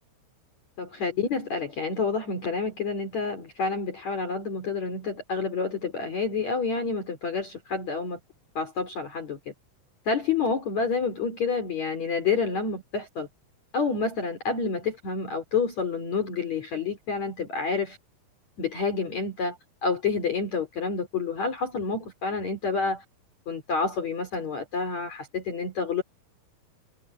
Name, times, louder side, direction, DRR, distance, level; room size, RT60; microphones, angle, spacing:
voice 1, 0.8-8.2 8.5-9.5 10.1-13.3 13.7-18.0 18.6-19.6 19.8-23.0 23.5-26.0, left 4 dB, 45° left, 4.7 m, -28 dB
omnidirectional pair, 4.7 m